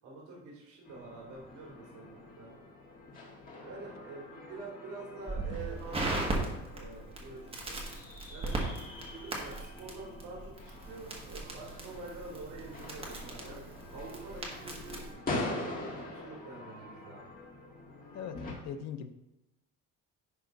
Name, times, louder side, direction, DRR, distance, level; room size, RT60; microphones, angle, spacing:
voice 1, 0.0-2.7 3.6-7.4 7.7-7.8 8.3-17.3, right 3 dB, 60° right, -4 dB, 2.8 m, -47 dB
sound 1, 0.8-18.5, left 2 dB, 25° left, 1.6 m, -44 dB
Crackle, 5.3-15.1, right 2 dB, 15° right, 1.3 m, -38 dB
voice 2, 18.1-19.1, left 8 dB, 55° left, 9 dB, 0.7 m, -40 dB
10.5 x 3.5 x 5.2 m, 0.93 s
cardioid pair, 170°, 32 cm